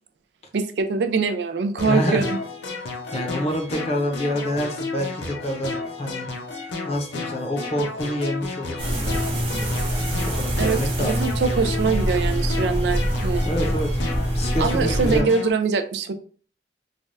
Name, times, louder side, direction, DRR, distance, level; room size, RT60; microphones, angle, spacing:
voice 1, 0.5-2.4 3.1-3.2 10.6-13.4 14.6-16.1, right 5 dB, 70° right, 8 dB, 0.4 m, -23 dB
sound 1, 1.8-15.5, left 3 dB, 85° left, 0.6 m, -33 dB
voice 2, 1.8-2.2 3.1-6.3 6.8-9.7 10.2-11.3 13.4-13.9 14.3-15.3, equal, 35° left, 3 dB, 0.6 m, -27 dB
sound 2, 8.8-15.2, equal, 30° right, 0.7 m, -25 dB
3.3 x 2.2 x 2.5 m, 0.42 s
head